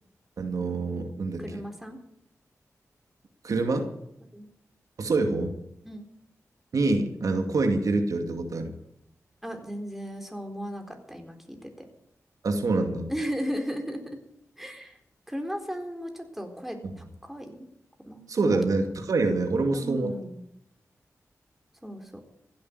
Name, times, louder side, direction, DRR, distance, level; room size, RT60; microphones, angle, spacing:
voice 1, 0.4-1.4 3.4-3.9 5.0-5.5 6.7-8.7 12.4-13.1 18.3-20.1, right 3 dB, 75° right, 5 dB, 2.3 m, -26 dB
voice 2, 1.4-2.0 4.3-4.5 5.8-6.1 9.4-11.7 13.1-14.0 14.6-15.0 15.3-17.7 18.0-18.2 19.7-20.4 21.8-22.2, equal, 5° right, 4 dB, 3.9 m, -35 dB
16.0 x 8.7 x 9.5 m, 0.76 s
cardioid pair, 60°, 6 cm